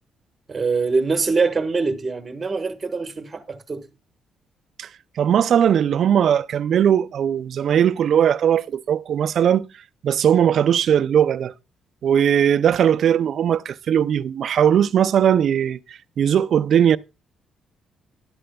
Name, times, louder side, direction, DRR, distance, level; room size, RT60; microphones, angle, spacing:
voice 1, 0.5-3.9, right 4 dB, 30° right, 1.4 m, -23 dB
voice 2, 5.2-9.6 10.0-11.5 12.0-17.0, right 9 dB, 65° right, 0.4 m, -19 dB
11.5 x 11.0 x 2.3 m
cardioid pair, 90°, 0 cm